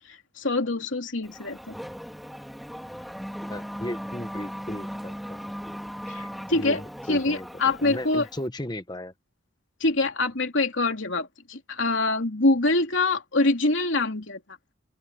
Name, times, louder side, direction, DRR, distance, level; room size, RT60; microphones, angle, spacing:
voice 1, 0.1-1.7 6.1-6.8 7.1-8.3 9.8-14.4, left 2 dB, 75° left, 2.9 m, -25 dB
Race car auto racing / Accelerating revving vroom, 1.2-8.5, equal, ahead, 3.6 m, -38 dB
voice 2, 3.5-5.4 6.5-9.1, left 1 dB, 20° left, 1.1 m, -35 dB
open air
head